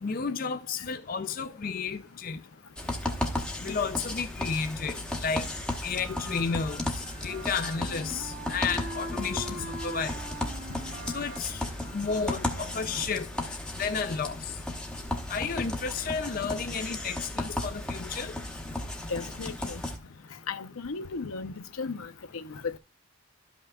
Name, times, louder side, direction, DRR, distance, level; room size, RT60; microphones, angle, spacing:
voice 1, 0.0-2.4 3.6-5.5 5.8-6.8 7.2-9.6 9.8-10.2 11.1-11.6 11.9-13.3 13.8-14.5 15.3-18.4, left 5 dB, 40° left, 0.4 m, -32 dB
sound 1, 2.8-20.0, left 1 dB, 5° left, 1.0 m, -35 dB
sound 2, 5.9-13.3, right 1 dB, 85° right, 2.6 m, -43 dB
voice 2, 19.1-19.8 20.5-22.8, left 4 dB, 85° left, 0.7 m, -36 dB
13.5 x 5.6 x 2.3 m
head